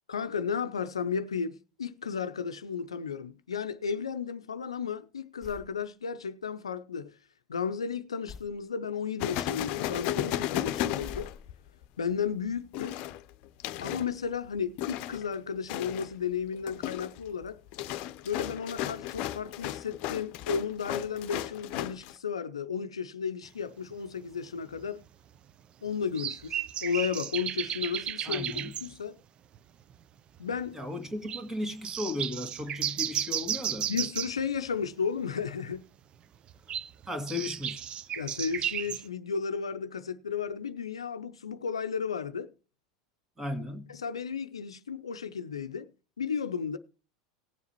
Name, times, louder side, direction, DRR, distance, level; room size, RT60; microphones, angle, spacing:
voice 1, 0.1-7.1 7.5-11.3 12.0-13.0 13.8-17.6 18.2-25.0 25.8-29.2 30.4-30.8 33.9-35.8 38.2-42.5 43.9-45.9 46.2-46.8, left 6 dB, 85° left, 0.5 m, -33 dB
sound 1, 5.4-5.8 8.3-8.6 11.0-11.8, left 5 dB, 15° left, 2.0 m, -45 dB
sound 2, 9.2-11.8 12.7-14.1 14.8-15.3 15.7-16.1 16.5-22.1, left 13 dB, 55° left, 0.7 m, -34 dB
sound 3, 23.9-24.0 24.8-24.9 26.1-28.9 29.5-29.6 29.9-30.0 30.4-30.7 31.3-31.4 31.8-34.4 36.5-39.0, right 10 dB, 35° right, 0.5 m, -34 dB
voice 2, 28.2-28.8 30.7-33.9 37.1-37.9 43.4-44.0, left 2 dB, 15° right, 2.2 m, -36 dB
18.5 x 7.1 x 3.0 m
hypercardioid pair, 85°, 3 cm